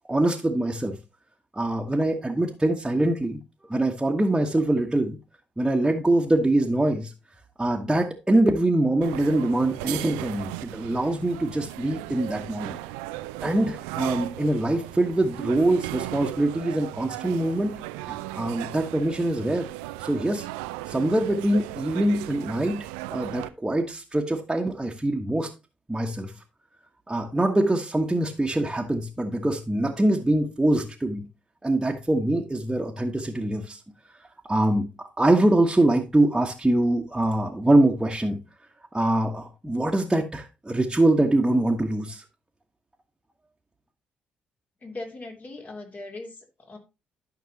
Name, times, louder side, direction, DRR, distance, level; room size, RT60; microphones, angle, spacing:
voice 1, 0.1-1.0 1.5-3.4 3.7-5.2 5.6-7.1 7.6-12.8 13.4-17.8 18.1-19.7 20.0-20.5 20.9-25.5 25.9-26.3 27.1-31.2 31.6-33.8 34.2-34.9 35.2-38.4 38.9-42.3, right 1 dB, 10° right, 1.4 m, -24 dB
sound 1, 9.0-23.5, right 17 dB, 75° right, 0.4 m, -36 dB
voice 2, 44.8-46.8, left 2 dB, 40° left, 3.1 m, -39 dB
13.0 x 5.9 x 2.9 m
hypercardioid pair, 45°, 4 cm